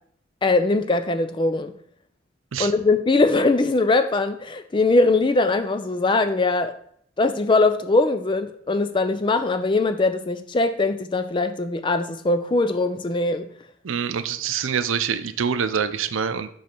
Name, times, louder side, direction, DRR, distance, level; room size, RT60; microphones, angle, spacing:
voice 1, 0.4-1.7 2.6-6.7 7.2-13.5, left 3 dB, 25° left, 9 dB, 0.4 m, -21 dB
voice 2, 13.8-16.5, right 7 dB, 90° right, 11 dB, 0.5 m, -25 dB
5.3 x 4.0 x 5.9 m, 0.65 s
head